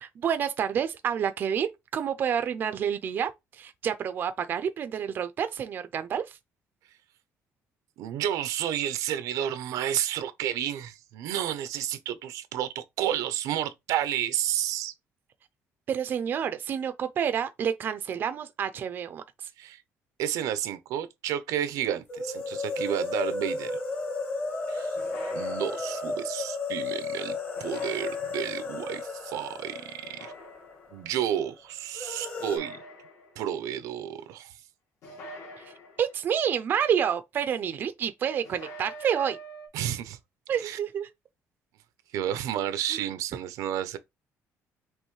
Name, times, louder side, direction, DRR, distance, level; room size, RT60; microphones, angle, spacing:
voice 1, 0.0-6.2 15.9-19.5 35.6-35.7 36.0-39.4 40.5-41.1 42.9-43.0, right 8 dB, 35° right, 0.5 m, -29 dB
voice 2, 8.0-14.9 19.6-19.8 20.2-23.7 24.7-24.9 25.3-30.3 30.9-32.8 33.4-34.5 39.7-40.2 40.6-40.8 42.1-44.0, right 11 dB, 90° right, 0.7 m, -31 dB
sound 1, 22.1-30.9 31.2-31.3 31.9-32.6, left 3 dB, 30° left, 1.3 m, -33 dB
sound 2, 25.0-26.2 27.6-28.7 30.0-31.0 32.4-33.6 35.0-36.4 38.4-39.7, equal, 60° left, 1.7 m, -45 dB
5.3 x 3.1 x 3.1 m
cardioid pair, 175°, 6 cm